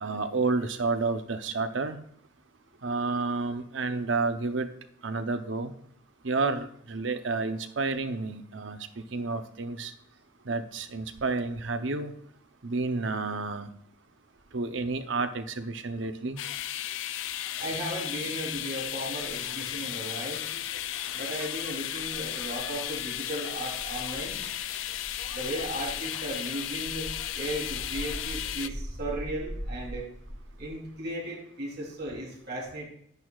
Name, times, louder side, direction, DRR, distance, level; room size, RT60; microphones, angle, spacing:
voice 1, 0.0-2.0 2.8-4.7 5.0-5.7 6.2-9.9 10.4-12.1 12.6-13.7 14.5-16.4, right 3 dB, 75° right, 9 dB, 0.8 m, -30 dB
sound 1, 16.4-28.7, left 12 dB, 80° left, 0.4 m, -35 dB
voice 2, 17.6-20.4 21.1-24.4 25.3-27.1 27.4-30.1 30.6-32.9, right 1 dB, 55° right, -4 dB, 3.6 m, -36 dB
sound 2, 19.3-31.0, equal, 45° left, 2.3 m, -43 dB
10.5 x 9.2 x 2.4 m, 0.65 s
head